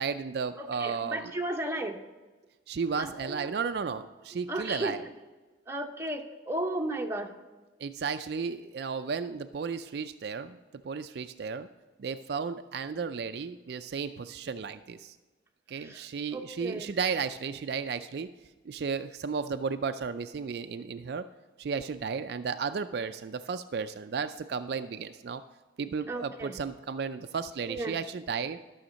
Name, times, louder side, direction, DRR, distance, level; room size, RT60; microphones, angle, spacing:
voice 1, 0.0-1.3 2.7-5.0 7.8-10.6 10.8-11.7 12.0-15.2 15.7-18.3 18.7-21.3 21.6-25.4 25.8-28.6, right 5 dB, 60° right, 9 dB, 0.4 m, -34 dB
voice 2, 0.6-2.0 3.0-3.4 4.5-4.9 5.7-7.3 15.8-16.0 16.3-17.0 26.1-26.5 27.7-28.0, right 1 dB, 15° right, 2 dB, 0.9 m, -34 dB
13.0 x 6.4 x 5.2 m, 1.2 s
head